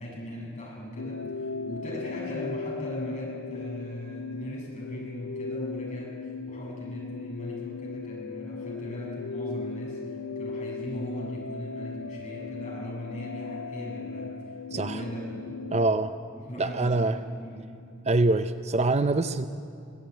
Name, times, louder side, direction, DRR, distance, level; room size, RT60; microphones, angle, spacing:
voice 1, 0.0-14.3 14.7-15.6 16.4-17.6, left 1 dB, 35° left, -3 dB, 6.8 m, -39 dB
sound 1, 1.0-15.9, left 4 dB, 80° left, 0.6 m, -37 dB
voice 2, 14.7-15.0 15.7-16.1 16.6-17.2 18.0-19.5, right 2 dB, 30° right, 11 dB, 0.6 m, -24 dB
23.0 x 16.5 x 9.2 m, 2.5 s
head